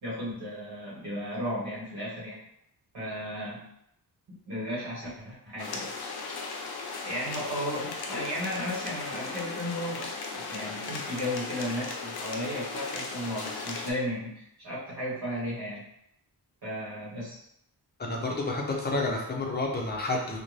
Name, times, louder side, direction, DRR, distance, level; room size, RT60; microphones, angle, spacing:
voice 1, 0.0-2.4 2.9-3.7 4.3-5.9 7.0-15.8 16.6-17.4, equal, 75° right, -9 dB, 1.1 m, -35 dB
sound 1, 5.6-13.9, left 4 dB, 75° left, 0.5 m, -37 dB
voice 2, 18.0-20.4, left 2 dB, 25° left, 0 dB, 0.5 m, -30 dB
2.6 x 2.1 x 3.1 m, 0.75 s
wide cardioid pair, 165°, 38 cm